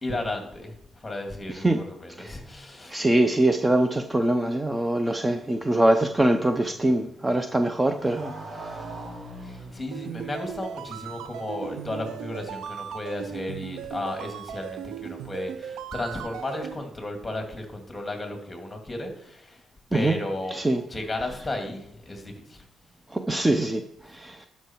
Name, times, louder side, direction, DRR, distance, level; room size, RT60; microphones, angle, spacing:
voice 1, 0.0-2.9 9.4-19.6 19.9-22.7 24.0-24.3, left 1 dB, 15° left, 3 dB, 2.5 m, -34 dB
voice 2, 2.9-8.3 8.6-8.7 19.9-20.2 20.5-20.8 23.1-24.5, right 1 dB, 15° right, 7 dB, 0.6 m, -23 dB
Motorcycle, 5.2-12.9, right 2 dB, 45° right, 3.2 m, -44 dB
sound 1, 9.9-16.8, right 9 dB, 80° right, 0.6 m, -37 dB
11.5 x 5.6 x 4.6 m, 0.76 s
cardioid pair, 90°, 0 cm